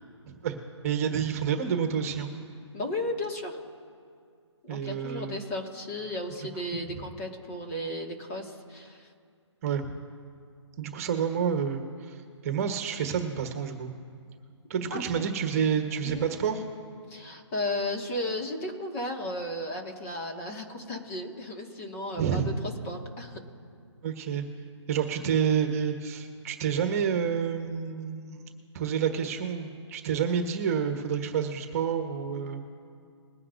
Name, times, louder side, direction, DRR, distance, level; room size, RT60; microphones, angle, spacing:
voice 1, 0.3-0.6 0.8-2.3 4.7-5.3 6.9-7.0 9.6-9.9 10.8-13.9 14.7-16.7 22.2-22.5 24.0-24.4 24.9-32.6, right 7 dB, 30° right, 5 dB, 1.4 m, -29 dB
voice 2, 2.7-3.6 4.6-9.1 14.9-15.3 16.0-16.2 17.1-23.4, left 1 dB, 30° left, 1 dB, 2.0 m, -34 dB
22.0 x 9.8 x 2.7 m, 2.3 s
hypercardioid pair, 155°, 15 cm